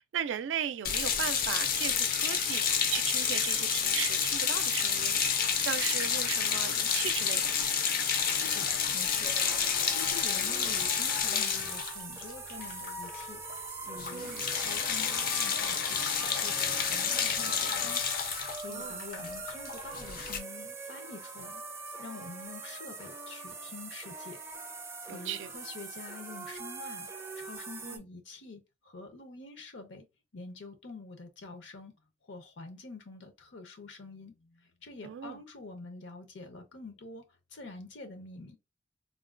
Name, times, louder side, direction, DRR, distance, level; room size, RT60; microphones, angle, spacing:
voice 1, 0.0-7.5 14.1-14.5 18.7-19.0 25.1-25.5 27.8-28.0 35.0-35.4, right 9 dB, 85° right, 0.3 m, -37 dB
sound 1, 0.8-13.2 13.5-13.7 14.0-20.4, left 7 dB, 50° left, 0.5 m, -30 dB
voice 2, 8.2-18.0 18.6-21.6 22.0-24.4 25.1-27.1 27.4-30.1 30.3-31.9 32.2-38.6, left 3 dB, 80° left, 0.7 m, -47 dB
sound 2, 9.2-28.0, right 3 dB, 15° right, 0.4 m, -42 dB
3.7 x 2.2 x 2.4 m
head